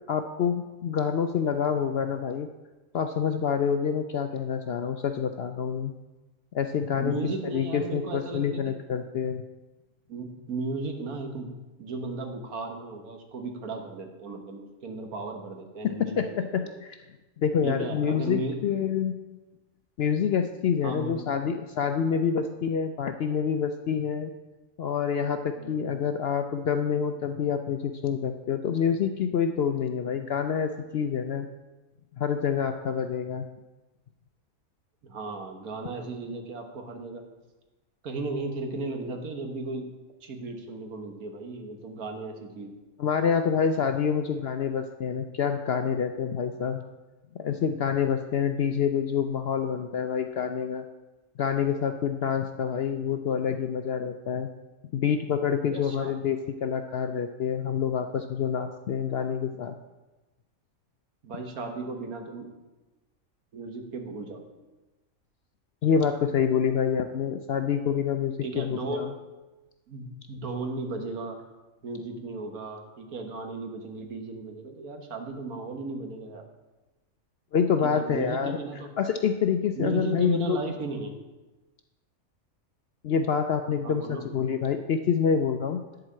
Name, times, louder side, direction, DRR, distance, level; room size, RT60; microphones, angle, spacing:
voice 1, 0.1-2.5 2.9-5.9 6.5-9.4 15.8-17.0 17.4-19.1 20.0-24.3 24.8-31.5 32.2-33.5 43.0-46.8 47.4-50.8 51.4-54.5 54.9-59.8 65.8-69.1 77.5-78.6 79.0-80.6 83.0-85.8, left 7 dB, 65° left, 7 dB, 0.6 m, -27 dB
voice 2, 7.0-8.7 10.1-11.5 11.8-16.7 17.6-18.6 20.8-21.3 25.6-26.0 35.0-37.3 38.0-39.9 40.2-42.7 55.7-56.1 61.2-62.5 63.5-64.4 68.4-69.1 69.9-71.4 71.8-76.4 77.8-78.9 79.8-81.2 83.8-84.3, right 3 dB, 85° right, 4 dB, 1.7 m, -35 dB
10.5 x 4.8 x 7.4 m, 1.1 s
omnidirectional pair, 1.5 m